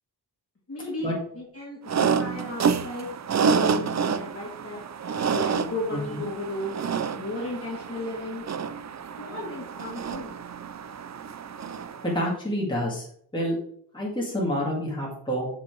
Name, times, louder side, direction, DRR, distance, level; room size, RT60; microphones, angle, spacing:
voice 1, 0.7-3.1 3.5-4.8 5.3-6.7 7.1-8.4 9.2-10.3, left 1 dB, 35° left, -6 dB, 2.5 m, -34 dB
sound 1, 1.9-12.2, right 6 dB, 40° right, 0.5 m, -28 dB
voice 2, 5.9-6.2 12.0-13.1 13.3-13.6 13.9-15.5, equal, 10° left, -4 dB, 2.2 m, -28 dB
7.3 x 6.1 x 4.6 m, 0.63 s
wide cardioid pair, 140°, 41 cm